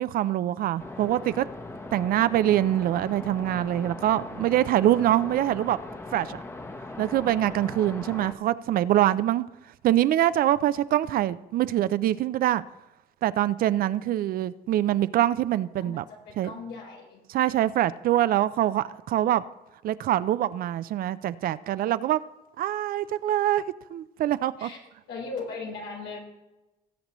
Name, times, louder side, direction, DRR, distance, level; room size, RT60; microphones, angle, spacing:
voice 1, 0.0-1.5 1.9-5.8 6.1-6.4 7.0-9.5 9.8-12.6 13.2-16.0 16.4-16.5 17.3-19.4 19.8-22.2 22.6-23.6 23.9-24.7, right 13 dB, 60° right, 0.5 m, -24 dB
sound 1, 0.8-8.3, left 2 dB, 15° left, 0.9 m, -40 dB
voice 2, 15.8-17.2 24.6-24.8 25.1-26.2, left 4 dB, 85° left, 3.9 m, -38 dB
19.0 x 8.1 x 3.1 m
cardioid pair, 110°, 17 cm